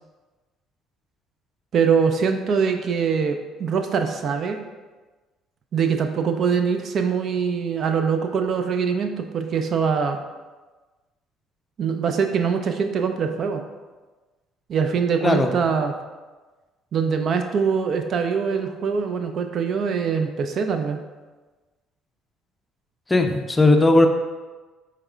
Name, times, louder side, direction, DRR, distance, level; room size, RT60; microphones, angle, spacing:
voice 1, 1.7-4.6 5.7-10.2 11.8-13.6 14.7-15.9 16.9-21.0, right 6 dB, 55° right, 6 dB, 0.4 m, -23 dB
voice 2, 23.1-24.1, left 2 dB, 15° left, 5 dB, 0.4 m, -17 dB
4.8 x 3.2 x 2.3 m, 1.3 s
supercardioid pair, 70°, 0 cm